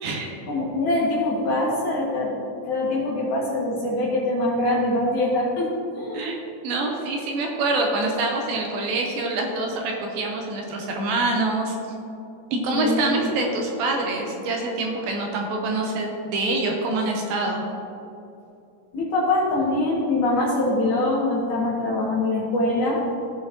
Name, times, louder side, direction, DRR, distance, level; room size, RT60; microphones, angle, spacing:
voice 1, 0.5-2.3 2.6-6.3 12.7-13.3 18.9-23.0, left 2 dB, 60° left, -5 dB, 2.4 m, -23 dB
voice 2, 6.6-11.8 12.5-17.6, right 2 dB, 75° right, 1 dB, 2.5 m, -25 dB
16.5 x 5.5 x 3.0 m, 2.7 s
omnidirectional pair, 4.5 m